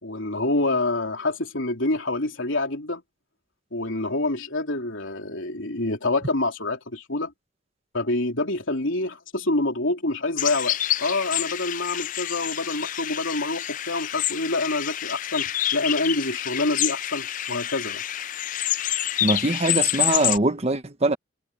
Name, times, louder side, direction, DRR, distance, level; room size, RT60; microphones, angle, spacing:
voice 1, 0.0-3.0 3.7-7.3 7.9-18.0, left 2 dB, 70° left, 3.4 m, -27 dB
sound 1, 10.4-20.4, left 12 dB, 40° left, 0.4 m, -28 dB
voice 2, 19.2-21.2, right 2 dB, 30° right, 1.2 m, -22 dB
head